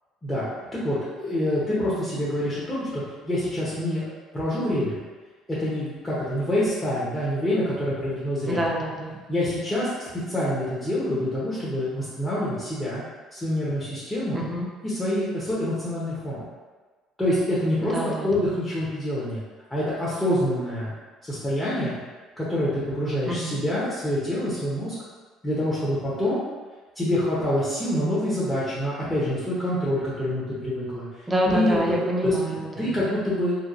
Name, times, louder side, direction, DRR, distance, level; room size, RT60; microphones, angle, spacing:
voice 1, 0.7-5.0 5.5-8.6 9.3-9.9 10.3-13.0 13.3-14.4 14.8-16.4 17.2-19.4 19.7-20.9 21.2-22.0 22.4-24.9 25.4-26.4 26.9-31.1 31.4-31.8 32.2-32.3 32.8-33.5, left 1 dB, 15° left, -9 dB, 0.9 m, -26 dB
voice 2, 8.5-9.2 14.3-14.7 17.8-18.3 23.3-23.6 31.3-33.0, equal, 15° right, -1 dB, 0.5 m, -27 dB
2.8 x 2.2 x 2.5 m, 1.3 s
supercardioid pair, 80°, 0 cm